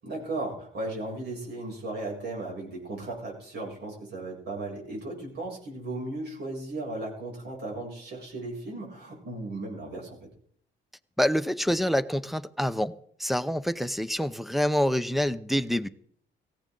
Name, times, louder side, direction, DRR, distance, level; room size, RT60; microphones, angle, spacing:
voice 1, 0.0-10.2, right 2 dB, 60° right, -2 dB, 7.5 m, -36 dB
voice 2, 11.2-12.9 13.2-15.9, equal, ahead, 10 dB, 0.8 m, -26 dB
17.5 x 15.5 x 4.0 m, 0.65 s
cardioid pair, 90°, 20 cm